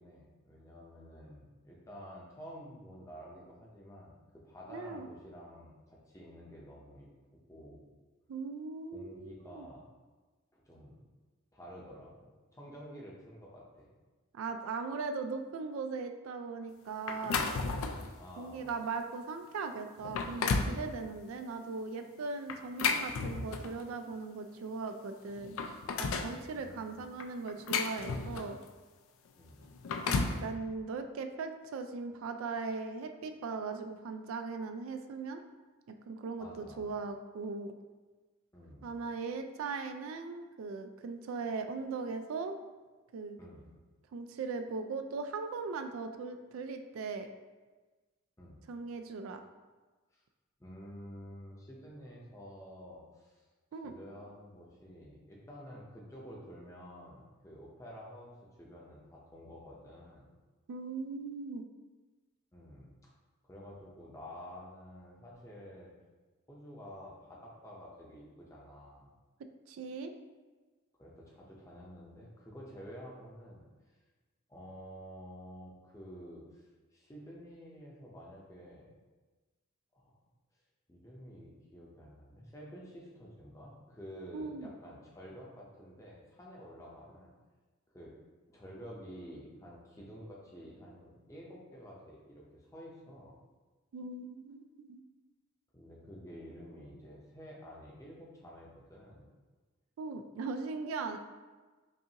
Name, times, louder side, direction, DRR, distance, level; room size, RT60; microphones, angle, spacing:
voice 1, 0.0-7.1 7.5-7.8 8.9-9.9 10.5-11.0 11.5-13.9 18.2-18.7 26.4-27.0 29.4-29.7 36.4-36.9 38.5-39.0 43.4-43.8 48.4-48.6 50.1-50.2 50.6-53.4 53.7-60.3 62.5-63.1 63.4-65.9 66.5-69.1 71.0-73.7 74.5-79.0 79.9-80.1 80.9-87.3 87.9-88.1 88.5-93.4 95.7-99.3, equal, 15° left, -4 dB, 0.6 m, -50 dB
voice 2, 4.7-5.1 8.3-9.7 14.3-17.5 18.4-25.6 26.0-28.6 30.1-35.4 35.9-37.7 38.8-42.5 43.1-43.4 44.1-47.3 48.7-49.4 53.7-53.9 60.7-61.7 69.7-70.1 84.3-84.7 93.9-95.0 100.0-101.2, right 4 dB, 75° right, 7 dB, 0.3 m, -39 dB
sound 1, 17.1-18.1 18.7-18.9 19.5-19.6 20.0-20.8 22.5-23.8 24.9-25.0 25.3-26.4 27.2-28.6 29.6-30.4, left 4 dB, 75° left, 0.4 m, -33 dB
5.4 x 2.5 x 2.8 m, 1.3 s
head